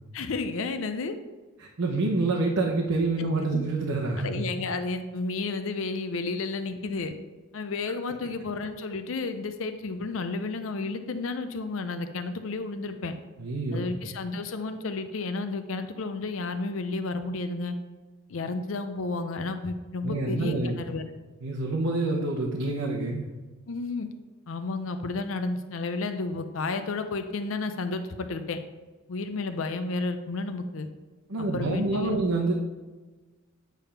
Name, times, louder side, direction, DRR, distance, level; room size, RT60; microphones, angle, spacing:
voice 1, 0.1-1.2 3.5-3.6 4.2-7.1 7.5-13.1 13.7-17.8 18.3-21.0 23.7-24.1 24.5-28.6 29.1-30.9 31.5-32.2, left 3 dB, 70° left, 8 dB, 0.6 m, -32 dB
voice 2, 1.6-4.4 13.4-13.9 20.0-20.8 21.4-23.3 31.3-32.5, right 2 dB, 85° right, -2 dB, 0.9 m, -27 dB
9.1 x 3.5 x 5.7 m, 1.3 s
head